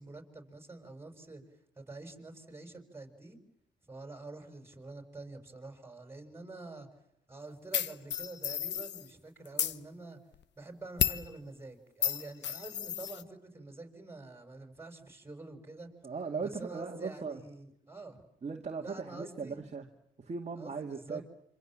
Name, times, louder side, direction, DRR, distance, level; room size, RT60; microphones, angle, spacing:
voice 1, 0.0-1.4 1.8-3.4 3.9-6.9 7.3-10.2 10.6-15.9 16.4-18.2 18.8-19.6 20.6-21.2, right 2 dB, 10° right, 6 dB, 6.1 m, -47 dB
sound 1, 7.7-9.1 9.4-9.8 11.0-11.3 12.0-13.2, left 9 dB, 65° left, 1.2 m, -32 dB
voice 2, 16.0-17.4 18.4-19.9 20.2-21.2, right 5 dB, 35° right, 2 dB, 2.4 m, -38 dB
27.0 x 26.0 x 7.5 m, 0.80 s
cardioid pair, 90°, 20 cm